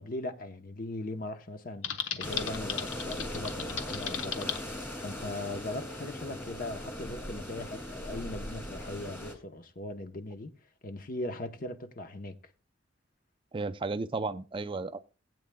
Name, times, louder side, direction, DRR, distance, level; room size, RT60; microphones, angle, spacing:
voice 1, 0.0-10.5 10.8-12.4, left 2 dB, 45° left, 0.9 m, -39 dB
Typing, 1.8-4.6, left 7 dB, 85° left, 1.0 m, -35 dB
sound 1, 2.2-9.3, left 1 dB, 10° left, 2.4 m, -39 dB
voice 2, 13.5-15.0, right 3 dB, 25° right, 0.4 m, -33 dB
19.5 x 8.6 x 2.2 m
head